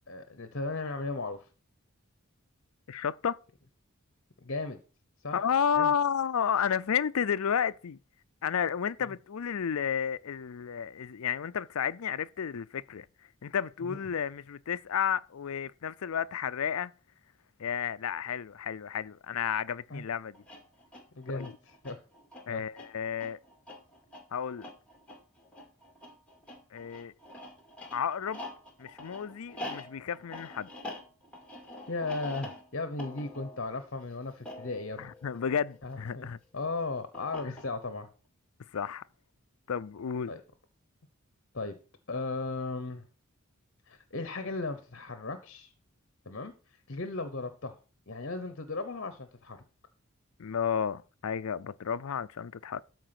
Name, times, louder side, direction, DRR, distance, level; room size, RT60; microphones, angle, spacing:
voice 1, 0.1-1.5 4.4-4.8 5.2-5.4 5.7-5.9 9.0-9.1 13.8-14.0 19.9-20.0 21.1-22.0 22.5-22.6 31.9-35.1 35.8-36.3 36.5-38.1 40.3-40.4 41.5-41.8 42.1-43.1 43.9-45.7 46.3-47.8 48.1-49.6, left 3 dB, 55° left, 0.9 m, -36 dB
voice 2, 2.9-3.4 5.3-8.0 8.4-13.1 13.4-16.9 17.6-20.4 21.3-21.5 22.5-23.4 24.3-24.7 26.7-27.1 27.9-28.4 28.8-30.7 35.0-36.4 37.4-37.5 38.7-39.0 39.7-40.3 50.4-52.8, left 7 dB, 75° left, 0.5 m, -32 dB
sound 1, 20.3-36.1 37.1-38.0, left 1 dB, 5° left, 2.2 m, -46 dB
13.0 x 4.7 x 5.9 m
head